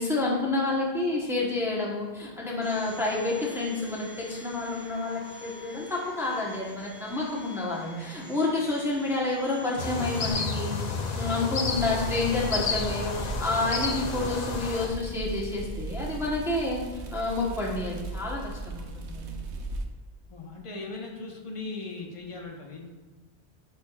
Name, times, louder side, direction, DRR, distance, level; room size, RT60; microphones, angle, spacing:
voice 1, 0.0-10.8 11.1-16.8 17.1-19.3, left 2 dB, ahead, -4 dB, 1.0 m, -29 dB
Domestic sounds home sounds, 2.6-10.3, equal, 40° right, 2.2 m, -47 dB
sound 1, 9.8-14.9, left 4 dB, 45° left, 0.6 m, -31 dB
sound 2, 11.7-19.8, right 2 dB, 80° right, 1.0 m, -37 dB
voice 2, 20.3-22.9, left 3 dB, 30° left, 0 dB, 1.0 m, -38 dB
10.0 x 4.7 x 2.4 m, 1.3 s
omnidirectional pair, 1.1 m